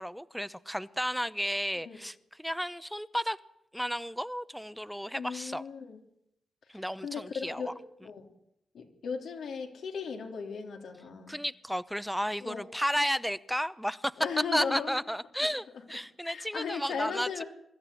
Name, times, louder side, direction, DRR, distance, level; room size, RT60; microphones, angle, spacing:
voice 1, 0.0-3.4 3.7-5.6 6.7-7.7 11.3-14.1 14.5-17.4, equal, ahead, 16 dB, 0.7 m, -33 dB
voice 2, 5.1-6.0 6.7-8.3 8.7-11.4 12.4-12.7 14.2-14.9 16.2-17.4, left 6 dB, 90° left, 4 dB, 3.5 m, -37 dB
24.0 x 13.5 x 9.9 m, 0.80 s
cardioid pair, 90°, 0 cm